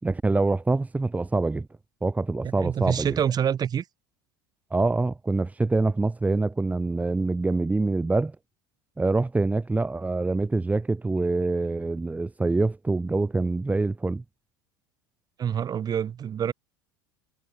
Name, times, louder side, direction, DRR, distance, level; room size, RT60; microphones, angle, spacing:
voice 1, 0.0-1.7 2.0-3.1 4.7-8.3 9.0-14.2, right 3 dB, 15° right, 3.2 m, -25 dB
voice 2, 2.4-3.8 15.4-16.5, right 8 dB, 35° right, 4.5 m, -26 dB
hypercardioid pair, 80°, 11 cm